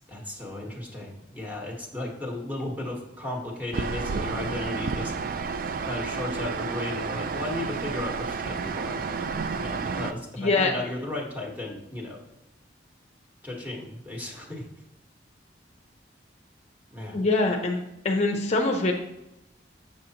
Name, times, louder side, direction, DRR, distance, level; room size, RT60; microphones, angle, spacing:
voice 1, 0.1-5.1 5.9-9.0 9.6-12.2 13.4-14.7 16.9-17.2, left 1 dB, 10° right, -1 dB, 1.3 m, -35 dB
sound 1, 3.7-10.1, right 5 dB, 50° right, 0.4 m, -31 dB
voice 2, 10.4-10.7 17.1-17.8 18.0-18.9, left 2 dB, 40° left, 3 dB, 0.6 m, -23 dB
6.9 x 6.6 x 2.9 m, 0.90 s
head